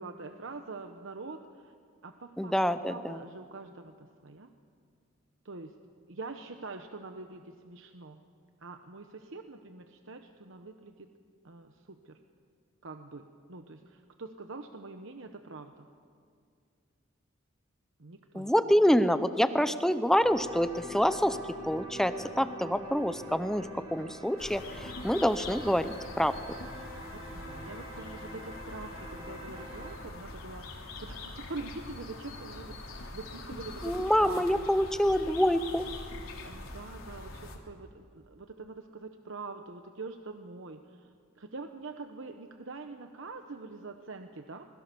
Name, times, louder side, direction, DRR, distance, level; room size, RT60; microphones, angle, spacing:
voice 1, 0.0-1.7 2.0-2.5 2.8-4.5 5.4-5.7 6.1-8.2 8.6-11.1 11.4-12.2 12.8-15.9 18.0-18.5 27.1-34.5 36.4-44.7, right 3 dB, 65° right, 6 dB, 1.0 m, -44 dB
voice 2, 2.4-3.2 18.3-21.4 21.7-26.4 33.8-35.8, equal, ahead, 11 dB, 0.6 m, -26 dB
sound 1, 20.2-30.0, equal, 25° right, 4.8 m, -45 dB
sound 2, 24.4-37.6, left 2 dB, 80° left, 3.3 m, -44 dB
26.5 x 21.0 x 7.0 m, 2.2 s
head